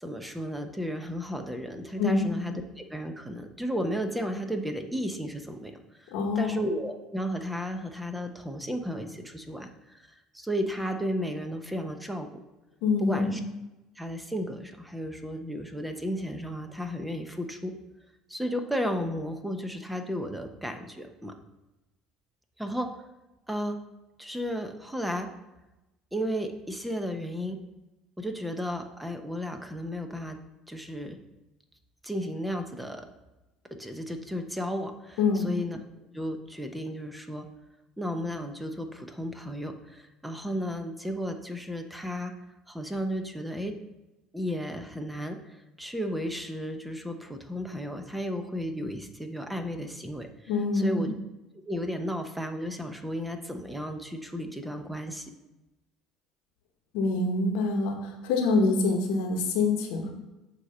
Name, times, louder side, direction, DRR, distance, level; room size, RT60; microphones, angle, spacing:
voice 1, 0.0-12.3 13.0-13.4 14.0-17.7 18.3-21.3 22.6-23.0 23.5-23.8 24.2-25.3 26.1-27.6 28.2-30.4 30.7-31.2 32.0-33.0 33.8-35.8 36.1-37.5 38.0-42.3 42.7-43.7 44.3-51.1 51.7-55.3, equal, 5° right, 6 dB, 0.8 m, -34 dB
voice 2, 6.1-6.6 12.8-13.4 35.2-35.5 50.5-51.1 56.9-60.1, left 3 dB, 75° left, 3 dB, 1.0 m, -25 dB
7.8 x 3.0 x 5.4 m, 1.0 s
hypercardioid pair, 75°, 0 cm